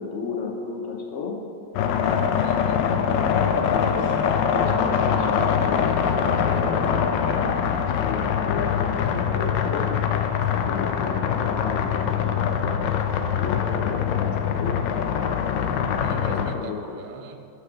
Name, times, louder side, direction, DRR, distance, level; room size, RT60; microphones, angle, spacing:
voice 1, 0.0-1.4 2.8-3.0 3.3-4.1 4.5-10.0 10.5-12.9 13.4-14.8 16.2-16.8, left 4 dB, 50° left, 0 dB, 1.0 m, -33 dB
sound 1, 1.8-16.6, left 7 dB, 75° left, 1.2 m, -23 dB
voice 2, 2.3-2.9 16.0-17.5, right 6 dB, 90° right, 6 dB, 1.4 m, -42 dB
5.8 x 5.7 x 6.4 m, 2.4 s
omnidirectional pair, 2.0 m